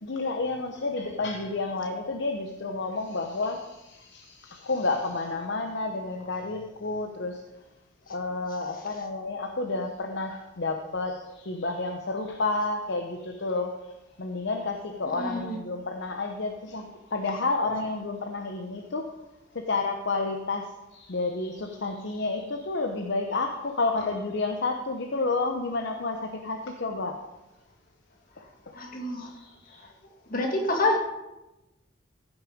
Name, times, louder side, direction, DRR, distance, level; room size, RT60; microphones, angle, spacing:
voice 1, 0.0-7.4 8.1-13.9 14.2-19.1 19.5-27.2 29.2-29.9, left 3 dB, 60° left, 4 dB, 0.8 m, -30 dB
voice 2, 15.2-15.6 28.4-28.5 28.7-29.3 29.8-29.9 30.3-31.0, left 2 dB, 45° left, 2 dB, 1.9 m, -27 dB
15.0 x 6.2 x 5.0 m, 1.0 s
head